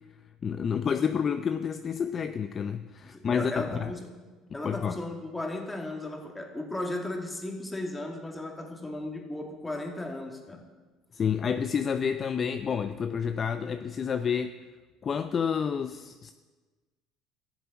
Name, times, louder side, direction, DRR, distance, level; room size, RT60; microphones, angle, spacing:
voice 1, 0.4-3.9 4.6-5.0 11.1-14.5 15.0-16.3, left 7 dB, 40° left, 9 dB, 0.5 m, -29 dB
voice 2, 3.0-4.2 4.5-10.6, left 2 dB, 15° left, 2 dB, 2.4 m, -36 dB
13.5 x 7.3 x 8.6 m, 1.3 s
supercardioid pair, 95°, 0 cm